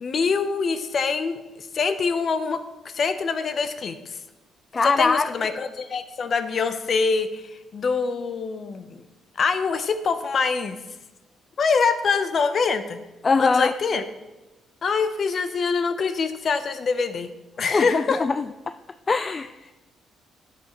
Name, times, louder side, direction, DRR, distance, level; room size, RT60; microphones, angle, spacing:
voice 1, 0.0-4.2 4.8-8.9 9.4-10.8 11.6-13.0 13.4-14.0 14.8-17.3 17.6-18.2, left 5 dB, 50° left, 11 dB, 0.8 m, -25 dB
voice 2, 4.7-5.3 13.2-13.8 17.7-18.5 19.1-19.7, left 4 dB, 35° left, 11 dB, 0.3 m, -22 dB
11.5 x 7.9 x 3.0 m, 1.1 s
cardioid pair, 90°, 0 cm